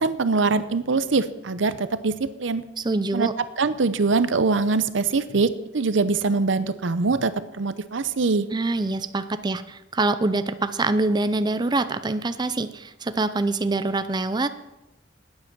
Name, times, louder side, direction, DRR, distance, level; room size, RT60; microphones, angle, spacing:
voice 1, 0.0-2.6 3.1-3.3 3.6-8.5, right 4 dB, 80° right, 14 dB, 0.7 m, -23 dB
voice 2, 2.8-3.3 8.5-14.5, right 2 dB, 25° right, 11 dB, 0.5 m, -25 dB
12.5 x 9.6 x 6.1 m, 0.97 s
head